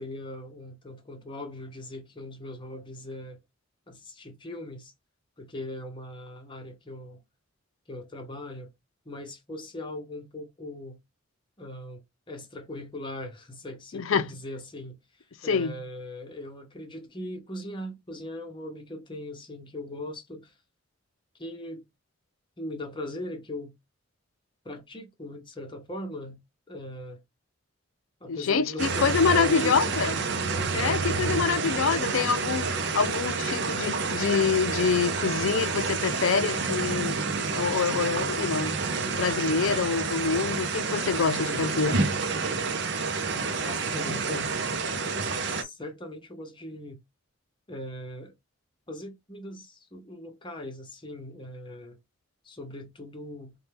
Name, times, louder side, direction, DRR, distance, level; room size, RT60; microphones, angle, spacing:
voice 1, 0.0-3.4 3.9-4.9 5.4-7.2 7.9-8.7 9.1-11.0 11.6-20.5 21.4-21.9 22.6-23.7 24.6-26.4 26.7-27.2 28.2-29.9 31.9-32.1 41.4-41.7 43.6-44.5 45.2-47.0 47.7-48.3 48.9-52.0 52.4-53.5, left 1 dB, 25° left, 0.8 m, -39 dB
voice 2, 13.9-14.3 15.4-15.7 28.3-30.2 30.7-37.2 37.5-38.8 39.2-42.0, left 5 dB, 70° left, 0.5 m, -26 dB
sound 1, 28.8-45.6, right 4 dB, 55° right, 0.6 m, -29 dB
4.2 x 2.3 x 3.3 m
head